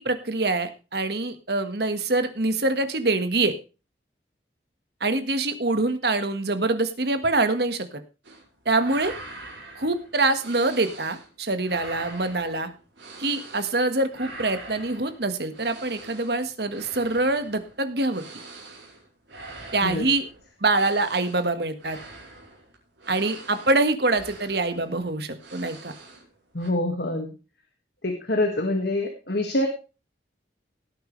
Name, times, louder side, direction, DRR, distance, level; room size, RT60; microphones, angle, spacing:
voice 1, 0.0-3.5 5.0-7.9 8.6-9.1 9.7-12.7 13.2-18.2 19.7-20.2 20.6-22.0 23.1-25.9, right 2 dB, 60° right, 9 dB, 1.6 m, -25 dB
sound 1, 8.2-8.5 8.7-11.3 11.6-13.8 14.1-26.3 26.6-26.7, right 2 dB, 85° right, 4.7 m, -44 dB
voice 2, 26.5-27.3 28.0-29.7, left 1 dB, 60° left, 4 dB, 1.9 m, -25 dB
17.5 x 9.3 x 3.3 m, 0.32 s
head